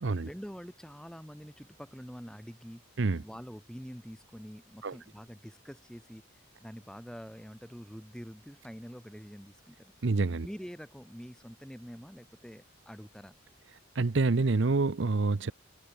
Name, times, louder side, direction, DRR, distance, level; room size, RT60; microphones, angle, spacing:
voice 1, 0.2-2.8 3.2-6.2 6.6-9.9 10.4-13.3, equal, 5° left, 6.9 m, -46 dB
voice 2, 10.0-10.5 13.9-15.5, right 3 dB, 60° right, 0.7 m, -27 dB
head